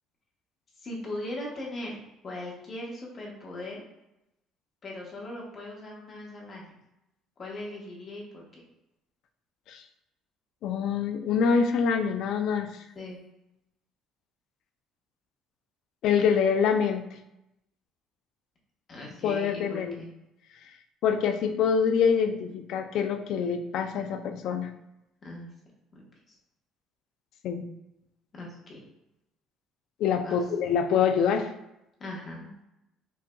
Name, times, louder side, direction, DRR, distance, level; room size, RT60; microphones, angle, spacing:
voice 1, 0.8-2.0 2.2-3.8 4.8-6.8 7.4-8.6 12.9-13.2 18.9-20.1 25.2-25.5 25.9-26.0 26.3-26.4 28.3-28.8 30.2-30.5 32.0-32.5, left 1 dB, 35° left, -3 dB, 1.2 m, -39 dB
voice 2, 10.6-12.7 16.0-17.0 19.2-20.0 21.0-24.7 27.4-27.7 30.0-31.5, left 6 dB, 65° left, 7 dB, 0.4 m, -25 dB
5.4 x 2.6 x 2.3 m, 0.88 s
cardioid pair, 125°, 0 cm